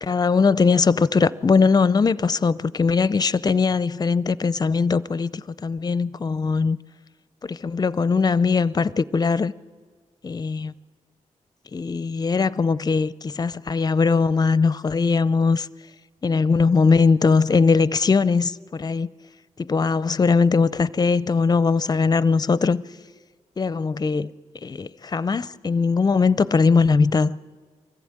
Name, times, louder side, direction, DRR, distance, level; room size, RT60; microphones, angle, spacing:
voice 1, 0.0-6.8 7.4-9.5 10.2-10.7 11.7-15.7 16.2-19.1 19.6-22.8 23.6-24.3 24.6-27.4, left 4 dB, 30° left, 0.5 m, -20 dB
23.5 x 15.0 x 8.7 m
cardioid pair, 85°, 13 cm